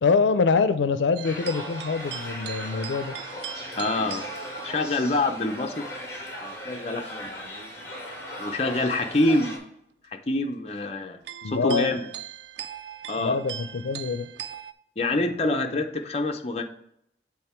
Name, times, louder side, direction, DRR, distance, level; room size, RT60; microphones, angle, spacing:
voice 1, 0.0-3.1 11.4-11.9 13.2-14.3, left 5 dB, 85° left, 12 dB, 0.4 m, -24 dB
sound 1, 1.2-9.6, left 1 dB, 15° left, 1.4 m, -38 dB
sound 2, 1.2-5.6 7.3-7.5 9.4-9.5 11.2-14.7, right 10 dB, 70° right, 0.3 m, -40 dB
voice 2, 3.8-4.2 4.6-5.9 6.4-7.7 8.4-9.5 10.3-11.2 11.5-12.1 13.1-13.4 15.0-16.6, left 2 dB, 35° left, 4 dB, 0.5 m, -26 dB
7.6 x 3.6 x 4.4 m, 0.76 s
head